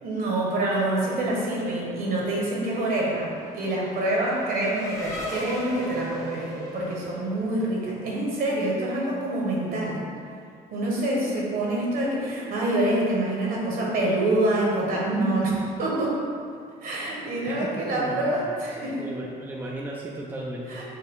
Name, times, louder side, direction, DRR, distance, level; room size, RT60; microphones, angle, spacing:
voice 1, 0.0-10.1 10.7-16.2 16.8-19.0 20.7-20.9, right 1 dB, 60° right, -4 dB, 1.3 m, -26 dB
Race car auto racing / Accelerating revving vroom, 2.1-8.2, left 1 dB, 15° left, 0.8 m, -38 dB
voice 2, 17.9-18.5 19.0-20.8, right 1 dB, 10° right, -2 dB, 0.4 m, -35 dB
6.3 x 2.3 x 3.7 m, 2.2 s
cardioid pair, 110°, 17 cm